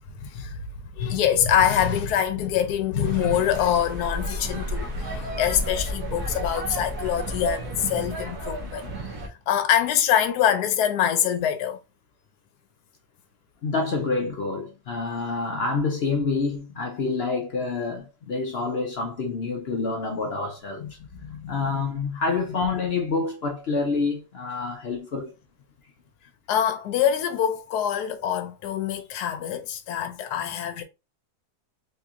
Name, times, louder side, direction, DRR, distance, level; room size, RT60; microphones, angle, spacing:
voice 1, 0.2-0.6 0.9-8.9 9.5-11.8 20.8-20.9 21.2-21.8 26.5-30.8, left 9 dB, 85° left, 1.2 m, -24 dB
sound 1, 3.0-9.3, equal, 75° right, 1.7 m, -32 dB
voice 2, 13.6-20.9 21.5-25.3, left 4 dB, 60° left, 0.6 m, -27 dB
4.2 x 2.8 x 2.4 m
omnidirectional pair, 1.7 m